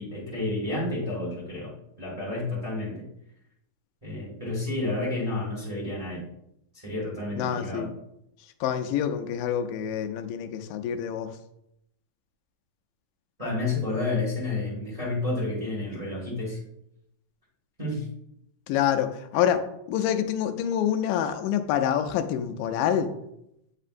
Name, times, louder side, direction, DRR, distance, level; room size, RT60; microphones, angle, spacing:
voice 1, 0.0-3.0 4.0-6.2 6.7-7.9 13.4-16.6 17.8-18.0, left 2 dB, 15° right, -5 dB, 1.3 m, -30 dB
voice 2, 7.4-7.9 8.6-11.3 18.7-23.1, left 9 dB, 85° left, 8 dB, 2.2 m, -27 dB
8.1 x 5.4 x 2.5 m, 0.79 s
omnidirectional pair, 3.8 m